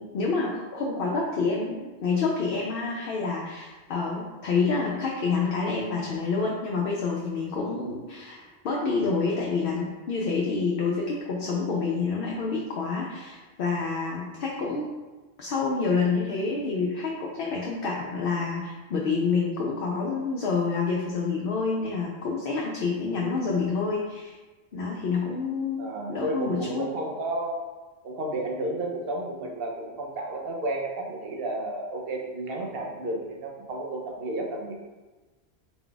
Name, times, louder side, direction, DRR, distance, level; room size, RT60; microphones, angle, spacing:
voice 1, 0.0-14.9 15.4-24.4 24.7-26.9, left 4 dB, 65° left, -3 dB, 0.7 m, -28 dB
voice 2, 25.8-27.6 28.0-34.8, right 1 dB, 65° right, 0 dB, 0.9 m, -32 dB
4.0 x 2.3 x 3.8 m, 1.2 s
omnidirectional pair, 1.1 m